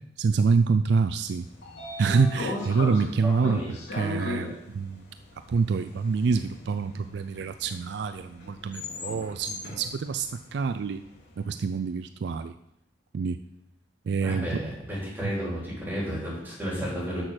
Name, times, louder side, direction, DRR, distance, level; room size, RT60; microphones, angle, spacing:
voice 1, 0.2-1.5 2.0-5.1 5.5-11.0 11.4-12.5 13.1-13.4 14.1-14.6 15.2-15.4, right 5 dB, 65° right, 10 dB, 0.4 m, -26 dB
Train / Sliding door, 1.2-11.3, left 2 dB, 75° left, 2.7 m, -38 dB
voice 2, 3.2-3.7 14.2-17.2, equal, 10° right, -6 dB, 4.1 m, -32 dB
7.6 x 6.4 x 6.3 m, 0.80 s
head